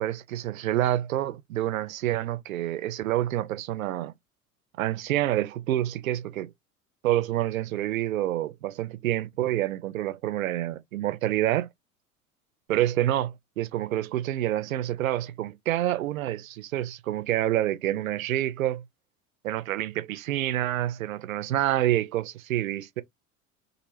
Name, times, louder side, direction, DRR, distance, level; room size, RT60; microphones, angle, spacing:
voice 1, 0.0-4.1 4.8-6.5 7.0-11.7 12.7-18.8 19.4-23.0, right 13 dB, 75° right, 0.5 m, -27 dB
2.6 x 2.0 x 2.7 m
figure-of-eight pair, 80°, 42 cm